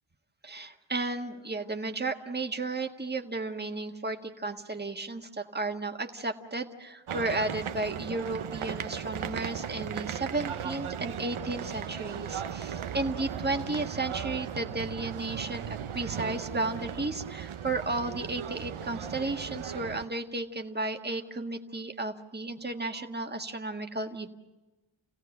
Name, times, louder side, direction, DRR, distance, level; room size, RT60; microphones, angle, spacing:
voice 1, 0.4-24.3, right 2 dB, 20° right, 4 dB, 1.5 m, -33 dB
sound 1, 7.1-20.1, right 8 dB, 80° right, 0.9 m, -37 dB
29.5 x 17.0 x 7.8 m, 1.1 s
wide cardioid pair, 120°, 48 cm